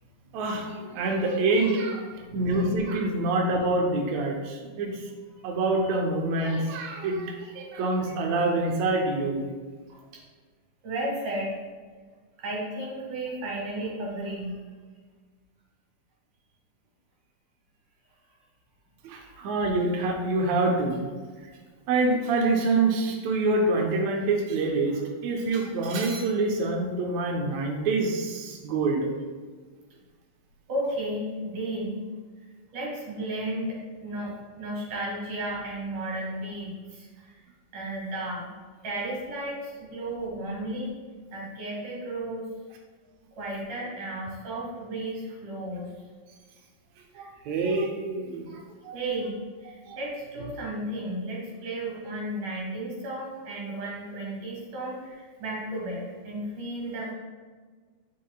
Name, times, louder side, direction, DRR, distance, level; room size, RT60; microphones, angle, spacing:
voice 1, 0.3-2.1 2.3-5.1 5.4-9.5 19.0-21.1 21.4-21.5 21.9-29.1 47.1-49.0 49.9-50.0, right 2 dB, 80° right, 0 dB, 1.6 m, -26 dB
voice 2, 2.2-2.8 4.7-4.8 5.3-5.5 9.9-10.2 10.8-11.6 12.4-14.6 19.1-19.3 30.7-32.0 32.7-37.4 37.7-38.5 38.8-40.9 41.3-42.5 43.3-45.9 47.1-47.3 48.9-57.1, right 1 dB, 60° right, -3 dB, 3.0 m, -34 dB
9.6 x 5.7 x 2.3 m, 1.5 s
omnidirectional pair, 4.2 m